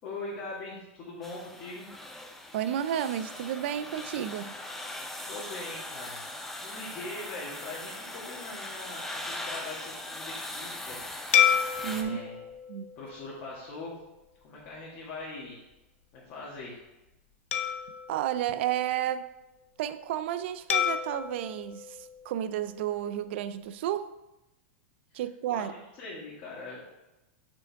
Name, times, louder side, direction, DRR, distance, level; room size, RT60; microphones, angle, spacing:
voice 1, 0.0-1.9 5.3-6.2 6.6-11.6 11.9-12.4 12.9-14.0 14.4-15.6 16.1-16.8 25.1-25.2 25.5-26.9, left 2 dB, 35° left, 1.6 m, -41 dB
sound 1, 1.2-12.0, left 1 dB, 5° left, 0.5 m, -40 dB
voice 2, 2.5-4.6 11.8-12.2 12.7-12.9 18.1-19.3 19.8-24.2 25.1-25.7, right 11 dB, 60° right, 0.4 m, -32 dB
sound 2, 11.3-14.0 14.6-14.8 17.5-19.3 20.7-23.0, left 9 dB, 80° left, 0.6 m, -30 dB
5.1 x 4.5 x 4.6 m
supercardioid pair, 145°, 7 cm